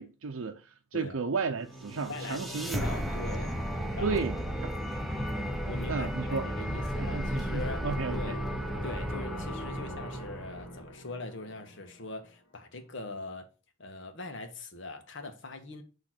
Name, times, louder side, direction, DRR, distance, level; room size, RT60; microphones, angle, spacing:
voice 1, 0.0-3.0 4.0-4.4 4.6-4.7 5.9-6.4 7.0-8.4, right 4 dB, 80° right, 0.6 m, -33 dB
sound 1, 1.5-12.5, right 1 dB, 80° left, 1.7 m, -44 dB
sound 2, 1.7-10.9, equal, ahead, 0.8 m, -34 dB
voice 2, 2.1-3.5 3.9-4.2 5.6-7.8 8.1-8.4 8.8-13.5 13.8-15.8, left 2 dB, 65° left, 1.3 m, -42 dB
8.7 x 3.2 x 5.9 m
head